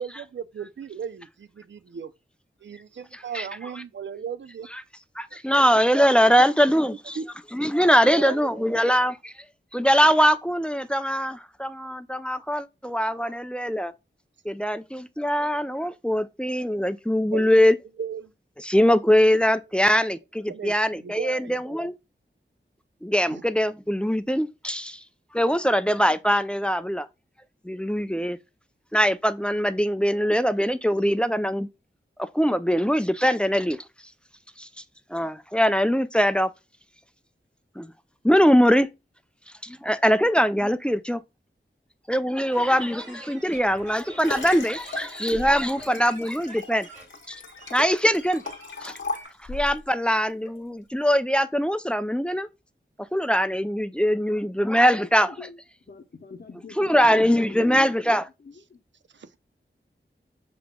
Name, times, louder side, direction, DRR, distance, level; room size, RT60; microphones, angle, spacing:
voice 1, 0.0-2.1 2.6-4.7 6.4-6.5 7.1-7.3 8.1-8.6 17.3-18.3 20.5-21.8 23.3-23.4 59.1-59.3, right 7 dB, 70° right, 0.5 m, -36 dB
voice 2, 3.1-3.5 5.2-7.2 7.5-9.3 9.7-13.9 14.5-17.8 18.6-21.9 23.0-25.0 25.3-27.1 27.6-28.4 28.9-31.7 32.2-33.8 34.6-34.7 35.1-36.5 37.8-37.9 38.2-38.9 39.6-41.2 42.1-46.9 47.3-47.4 47.7-48.4 48.8-48.9 49.5-52.5 53.1-55.3 56.8-58.3, equal, 5° left, 0.4 m, -22 dB
sound 1, 42.5-49.3, right 2 dB, 40° right, 2.4 m, -48 dB
Liquid, 43.5-49.8 50.5-50.6, left 3 dB, 80° left, 1.0 m, -37 dB
voice 3, 54.8-55.6 55.9-58.1 58.4-58.8, left 4 dB, 55° left, 0.8 m, -45 dB
6.9 x 3.0 x 2.2 m
wide cardioid pair, 70°, 20 cm